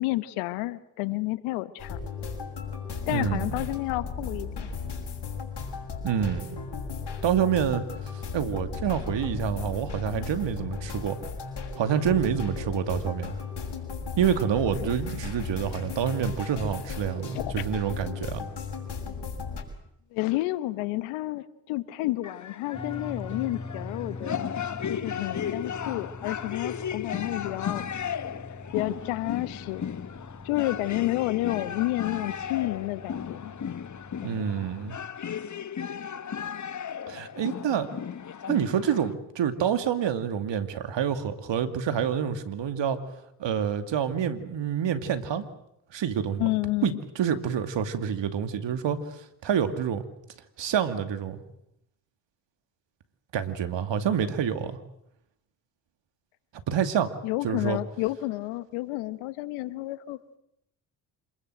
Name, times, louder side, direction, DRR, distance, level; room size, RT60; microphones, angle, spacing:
voice 1, 0.0-2.0 3.1-4.7 17.3-17.6 20.1-24.6 24.9-27.8 28.7-29.9 30.4-33.5 34.3-34.4 46.4-47.0 57.2-60.4, left 18 dB, 85° left, 15 dB, 1.2 m, -30 dB
sound 1, 1.8-19.6, left 5 dB, 55° left, 6.6 m, -36 dB
voice 2, 3.1-3.5 6.0-6.6 7.2-7.8 8.1-11.2 11.8-13.4 14.2-18.4 34.2-35.0 37.1-37.9 38.5-43.0 43.4-45.5 45.9-46.5 46.8-50.0 50.6-51.4 53.3-54.8 56.7-57.1 57.4-57.8, right 8 dB, 65° right, 9 dB, 2.6 m, -27 dB
sound 2, 22.2-39.1, left 8 dB, 35° left, 1.2 m, -35 dB
sound 3, 22.7-35.1, left 2 dB, 10° left, 2.1 m, -43 dB
26.5 x 21.0 x 7.9 m, 0.79 s
hypercardioid pair, 50°, 48 cm